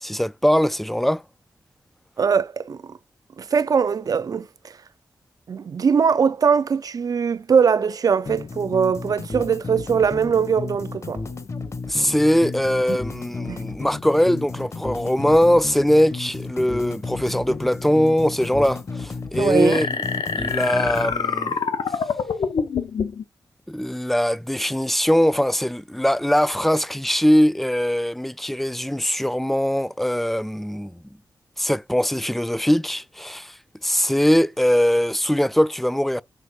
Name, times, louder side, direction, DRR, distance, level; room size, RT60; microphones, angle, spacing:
voice 1, 0.0-1.2 11.9-19.9 20.3-21.6 23.7-30.9 31.6-33.5 33.8-36.2, equal, 5° left, 0.3 m, -21 dB
voice 2, 2.2-2.8 3.4-4.5 5.5-11.2 12.9-13.0 13.5-13.6 19.3-19.8, right 6 dB, 55° right, 0.6 m, -21 dB
sound 1, 8.3-21.2, left 4 dB, 40° left, 0.9 m, -33 dB
sound 2, 19.7-23.2, left 6 dB, 80° left, 1.0 m, -26 dB
6.7 x 3.6 x 4.7 m
wide cardioid pair, 110°, 8 cm